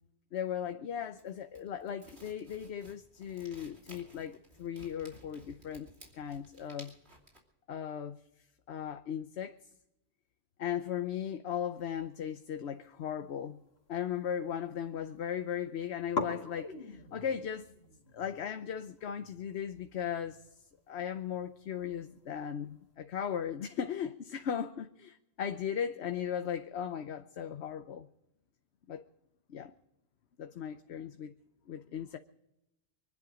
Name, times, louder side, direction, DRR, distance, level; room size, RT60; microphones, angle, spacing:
voice 1, 0.3-5.9 6.1-6.9 7.7-8.2 8.7-9.6 10.6-13.6 13.9-17.7 18.1-20.4 20.9-28.1 28.9-29.0 29.5-29.7 30.4-31.3 31.7-32.2, left 8 dB, 90° left, 1.0 m, -37 dB
sound 1, 1.1-7.4, right 1 dB, 85° right, 3.1 m, -56 dB
sound 2, 12.6-14.4 14.7-15.3 15.6-15.7 16.1-22.9, left 3 dB, 75° left, 2.1 m, -44 dB
25.0 x 10.5 x 5.0 m
omnidirectional pair, 1.1 m